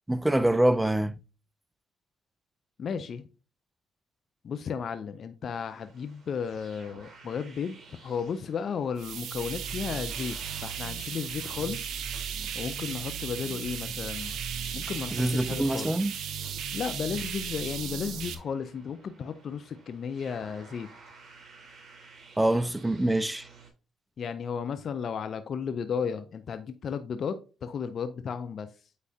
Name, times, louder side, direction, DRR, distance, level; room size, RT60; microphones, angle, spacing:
voice 1, 0.1-1.2 15.1-16.1 22.4-23.5, right 1 dB, 10° right, 0.5 m, -25 dB
voice 2, 2.8-3.3 4.4-11.9 12.5-14.3 14.7-15.9 16.7-20.9 24.2-28.7, left 6 dB, 55° left, 0.5 m, -34 dB
sound 1, 5.4-23.7, right 3 dB, 50° right, 3.5 m, -55 dB
sound 2, 9.0-18.3, right 7 dB, 70° right, 0.9 m, -35 dB
8.4 x 4.7 x 2.8 m
supercardioid pair, 70°, 0 cm